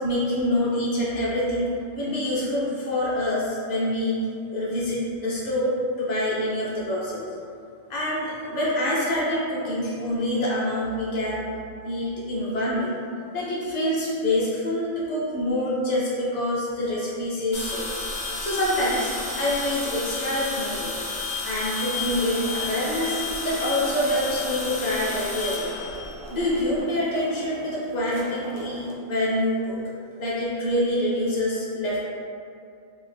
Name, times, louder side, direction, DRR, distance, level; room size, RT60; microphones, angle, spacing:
voice 1, 0.0-4.2 4.5-7.3 7.9-11.5 11.8-13.0 13.3-17.9 18.4-20.9 21.4-25.7 26.3-29.8 30.2-32.0, left 1 dB, 45° left, -7 dB, 0.6 m, -26 dB
sound 1, 17.5-26.8, left 3 dB, 65° left, 0.9 m, -32 dB
sound 2, 21.9-28.9, right 1 dB, 80° right, 1.0 m, -41 dB
2.8 x 2.2 x 3.3 m, 2.5 s
omnidirectional pair, 1.4 m